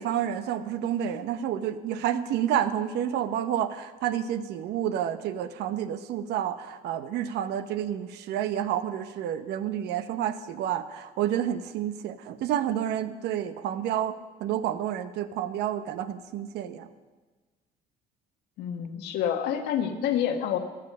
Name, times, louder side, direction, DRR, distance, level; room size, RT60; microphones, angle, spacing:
voice 1, 0.0-16.9, right 10 dB, 80° right, 11 dB, 0.9 m, -29 dB
voice 2, 18.6-20.6, left 9 dB, 85° left, 6 dB, 1.4 m, -28 dB
15.0 x 12.5 x 5.4 m, 1.3 s
cardioid pair, 110°, 17 cm